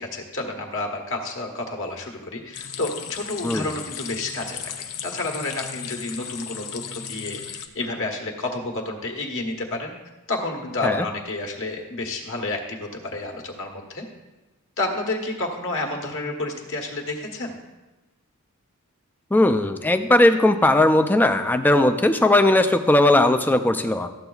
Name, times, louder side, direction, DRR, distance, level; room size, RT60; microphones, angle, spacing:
voice 1, 0.0-9.9 10.3-14.0 14.8-17.5, left 2 dB, 60° left, 2 dB, 1.3 m, -30 dB
sound 1, 2.5-7.7, left 8 dB, 80° left, 0.6 m, -36 dB
voice 2, 19.3-24.1, left 1 dB, 10° left, 8 dB, 0.4 m, -18 dB
13.5 x 7.8 x 2.3 m, 1.1 s
head